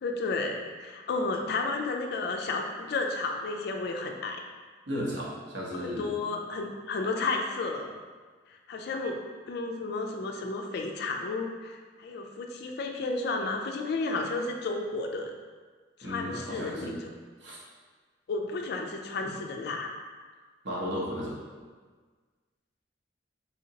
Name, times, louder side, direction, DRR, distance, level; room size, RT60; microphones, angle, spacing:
voice 1, 0.0-4.4 5.7-8.0 8.7-9.2 9.5-15.3 16.0-17.0 18.3-19.9, left 3 dB, 55° left, 3 dB, 0.3 m, -32 dB
voice 2, 4.9-6.1 16.0-17.0 17.4-17.6 19.2-19.3 20.6-21.3, equal, 75° right, -5 dB, 0.9 m, -34 dB
3.4 x 2.8 x 2.8 m, 1.5 s
head